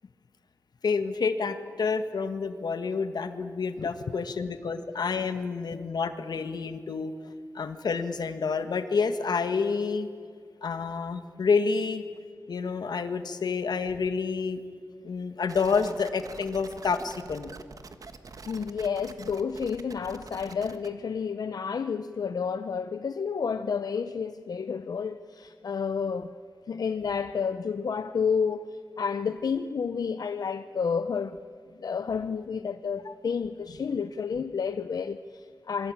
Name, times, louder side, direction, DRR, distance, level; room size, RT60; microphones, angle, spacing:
voice 1, 0.8-7.1 7.5-10.1 10.6-12.0 12.5-14.6 15.0-17.5 33.1-33.2, left 5 dB, 85° left, 1.7 m, -29 dB
sound 1, 15.5-20.9, right 4 dB, 60° right, 1.5 m, -45 dB
voice 2, 18.5-26.3 26.7-31.4 31.8-35.9, left 6 dB, 70° left, 0.7 m, -30 dB
28.0 x 23.0 x 8.8 m
wide cardioid pair, 135°, 7 cm